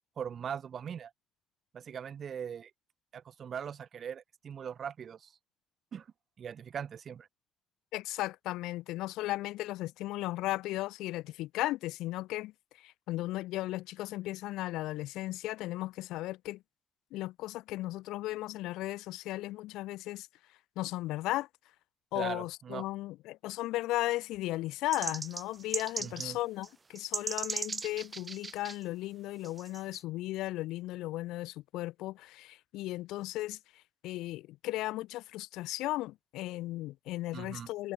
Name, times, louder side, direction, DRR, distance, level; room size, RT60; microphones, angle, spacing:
voice 1, 0.2-1.1 1.7-2.7 3.1-5.3 5.9-6.1 6.4-7.3 22.1-22.9 26.0-26.4 37.3-37.7, right 8 dB, 55° right, 1.1 m, -40 dB
voice 2, 7.9-12.5 12.8-16.6 17.1-20.3 20.8-21.5 22.1-33.6 34.0-37.9, left 17 dB, 85° left, 0.6 m, -36 dB
sound 1, 24.9-26.3 26.6-26.7 27.0-28.8 29.4-30.0, right 4 dB, 35° right, 0.5 m, -37 dB
supercardioid pair, 65°, 0 cm